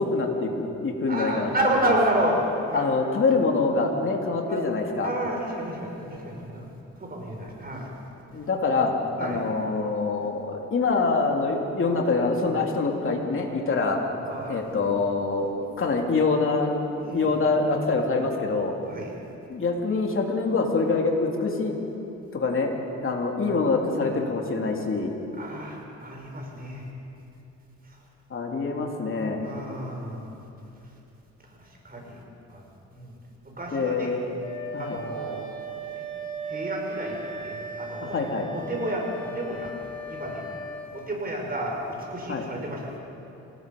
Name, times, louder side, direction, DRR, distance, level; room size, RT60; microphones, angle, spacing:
voice 1, 0.0-1.9 2.7-5.1 8.3-8.9 9.2-14.0 14.5-16.7 17.1-18.8 19.5-21.7 22.3-22.7 23.0-25.2 28.3-29.4 33.7-34.2 34.7-35.0 38.0-38.5 42.3-42.5, left 3 dB, 45° left, 1 dB, 3.2 m, -25 dB
voice 2, 1.1-2.4 2.7-2.8 4.5-4.6 5.0-6.7 7.0-7.9 9.2-9.4 14.2-14.6 17.0-17.3 18.9-19.1 25.4-26.9 27.9-28.0 29.4-30.4 31.6-32.2 32.5-32.6 32.9-33.1 33.4-34.2 34.8-35.5 36.0-36.1 36.5-38.2 38.5-39.8 40.1-40.5 40.9-43.0, right 1 dB, 30° right, 0 dB, 5.7 m, -31 dB
Wind instrument woodwind instrument, 34.4-40.9, right 2 dB, 15° left, 2.8 m, -37 dB
27.0 x 18.5 x 5.5 m, 2.9 s
cardioid pair, 90°, 30 cm